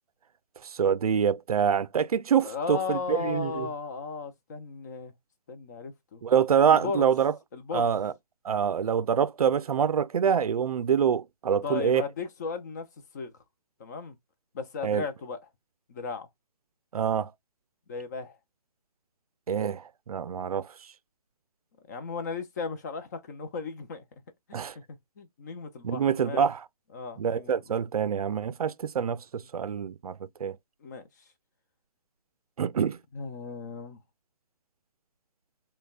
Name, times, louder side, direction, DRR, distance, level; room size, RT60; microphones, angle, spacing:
voice 1, 0.6-3.7 6.2-7.4 7.7-8.1 8.4-12.0 14.8-15.0 16.9-17.3 19.5-20.7 24.5-24.8 25.8-26.6 27.2-30.6 32.6-33.0, right 7 dB, 70° right, 0.4 m, -26 dB
voice 2, 2.4-5.1 5.5-6.2 6.7-7.1 7.5-7.9 11.6-12.9 13.1-13.3 13.8-14.1 14.5-15.4 15.9-16.3 17.9-18.4 21.9-24.0 24.5-24.6 25.2-26.4 26.9-27.5 30.8-31.0 33.1-34.0, left 5 dB, 30° left, 0.5 m, -35 dB
5.1 x 2.2 x 2.3 m
figure-of-eight pair, 150°, 20 cm